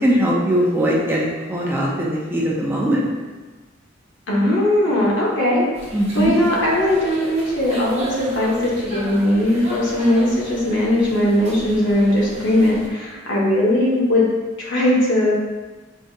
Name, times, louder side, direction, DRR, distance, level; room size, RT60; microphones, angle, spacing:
voice 1, 0.0-3.0 5.9-6.3, equal, 10° right, -4 dB, 0.5 m, -20 dB
voice 2, 4.3-5.7 6.1-14.2 14.6-15.4, left 1 dB, 70° left, -5 dB, 1.1 m, -19 dB
sound 1, 5.7-12.9, right 1 dB, 35° right, 1.0 m, -36 dB
4.6 x 2.7 x 2.7 m, 1.3 s
head